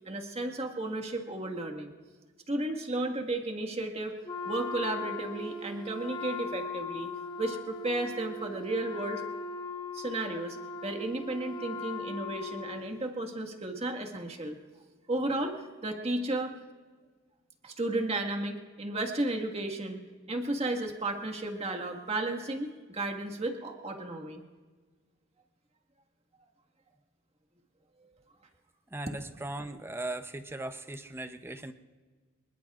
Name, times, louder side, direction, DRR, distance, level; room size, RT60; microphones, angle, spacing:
voice 1, 0.0-1.9 2.5-4.2 4.4-7.1 7.4-9.3 9.9-10.6 10.8-14.5 15.1-16.5 17.6-20.0 20.3-24.4, right 2 dB, 30° right, 3 dB, 1.7 m, -33 dB
Wind instrument woodwind instrument, 4.2-13.1, left 2 dB, 20° left, 0.9 m, -39 dB
voice 2, 28.9-31.7, right 2 dB, 10° right, 8 dB, 0.7 m, -38 dB
26.0 x 21.0 x 2.5 m, 1.5 s
head